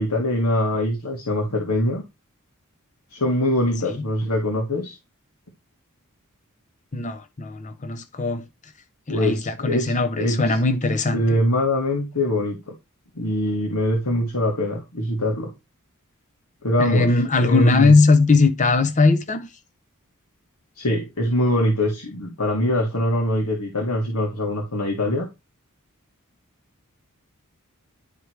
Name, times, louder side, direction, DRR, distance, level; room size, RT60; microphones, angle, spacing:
voice 1, 0.0-2.0 3.1-5.0 9.1-10.6 11.1-12.6 13.2-15.5 16.6-17.1 17.4-17.9 20.8-25.3, left 1 dB, 85° left, 2.2 m, -23 dB
voice 2, 6.9-8.5 9.1-11.4 16.8-19.5, left 3 dB, 35° left, 0.7 m, -19 dB
11.0 x 4.7 x 3.3 m
head